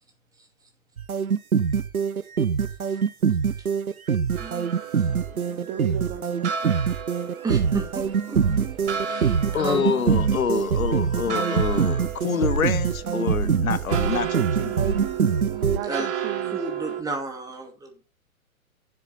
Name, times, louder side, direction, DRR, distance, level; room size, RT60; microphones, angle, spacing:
sound 1, 1.0-15.8, right 6 dB, 85° right, 1.0 m, -24 dB
voice 1, 4.4-4.7 5.0-5.7 7.4-8.4 9.0-10.0 11.2-11.3 15.4-16.1 16.5-18.0, right 3 dB, 10° right, 2.4 m, -34 dB
sound 2, 4.4-17.0, right 7 dB, 50° right, 1.9 m, -34 dB
voice 2, 5.6-6.8 15.7-16.6, right 10 dB, 25° right, 1.0 m, -35 dB
voice 3, 9.4-14.8, left 7 dB, 75° left, 1.2 m, -27 dB
9.7 x 8.1 x 4.2 m
figure-of-eight pair, 120°, 42 cm